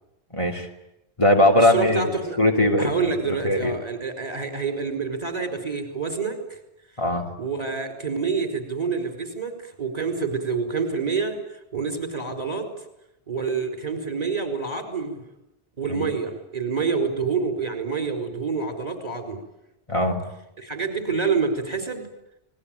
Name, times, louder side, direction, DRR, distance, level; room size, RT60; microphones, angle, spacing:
voice 1, 0.3-0.7 1.2-2.1 2.4-3.7 7.0-7.3 15.9-16.1 19.9-20.2, left 1 dB, 30° left, 2 dB, 3.0 m, -20 dB
voice 2, 1.6-2.4 2.8-6.6 7.4-12.7 13.3-15.2 15.8-19.4 20.6-22.1, right 5 dB, 35° right, 6 dB, 5.0 m, -27 dB
28.5 x 20.5 x 9.1 m, 0.87 s
omnidirectional pair, 1.1 m